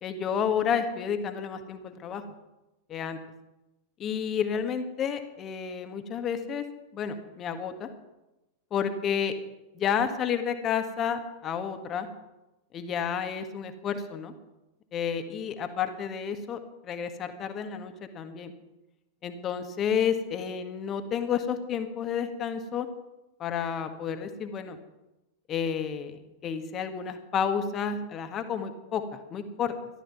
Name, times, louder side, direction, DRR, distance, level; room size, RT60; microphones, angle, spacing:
voice 1, 0.0-2.2 2.9-3.2 4.0-6.6 6.9-7.9 8.7-9.3 9.7-12.1 12.7-14.3 14.9-18.5 19.2-22.9 23.4-24.8 25.5-29.7, left 7 dB, 30° left, 8 dB, 1.6 m, -31 dB
15.0 x 12.5 x 6.0 m, 0.99 s
figure-of-eight pair, 90°, 0 cm